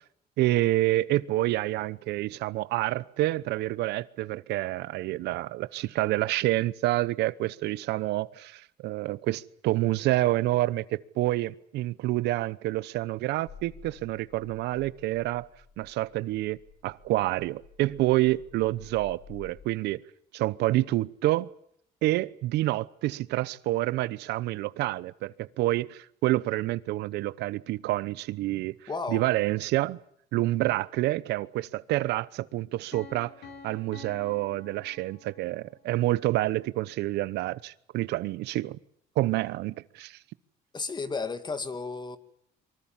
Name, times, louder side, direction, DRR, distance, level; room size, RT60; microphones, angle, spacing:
voice 1, 0.4-15.5 15.8-20.0 20.3-21.5 22.0-28.7 29.1-30.0 30.3-33.3 33.6-38.8 39.2-40.2, right 17 dB, 85° right, 0.9 m, -28 dB
sound 1, 13.5-19.6, left 7 dB, 55° left, 5.7 m, -52 dB
voice 2, 28.9-29.3 40.7-42.2, left 4 dB, 25° left, 2.2 m, -33 dB
Piano, 32.9-35.7, left 4 dB, 75° left, 7.4 m, -48 dB
24.5 x 24.5 x 7.4 m
cardioid pair, 110°, 17 cm